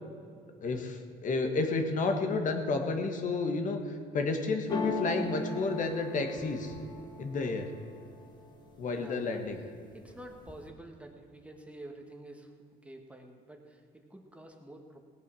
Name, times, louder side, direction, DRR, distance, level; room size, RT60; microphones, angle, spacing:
voice 1, 0.6-6.7 7.2-7.7 8.8-9.6, left 3 dB, 50° left, 5 dB, 1.6 m, -31 dB
sound 1, 4.7-8.6 9.0-9.6 9.9-10.7, left 2 dB, 25° left, 1.8 m, -38 dB
voice 2, 8.9-9.4 9.9-12.5 12.8-15.0, right 1 dB, 5° right, 3 dB, 1.5 m, -49 dB
18.0 x 8.3 x 6.3 m, 2.3 s
cardioid pair, 110°, 17 cm